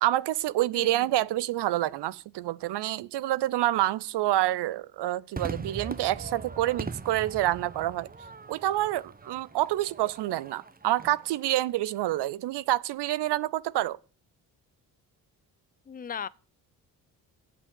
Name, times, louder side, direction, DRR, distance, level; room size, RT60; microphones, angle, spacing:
voice 1, 0.0-8.1 8.5-14.0, right 14 dB, 55° right, 0.6 m, -27 dB
voice 2, 0.7-1.1 15.9-16.3, left 7 dB, 20° left, 0.6 m, -37 dB
Crowd / Fireworks, 5.4-11.9, right 4 dB, 20° right, 1.0 m, -41 dB
8.2 x 8.0 x 7.1 m
hypercardioid pair, 45°, 49 cm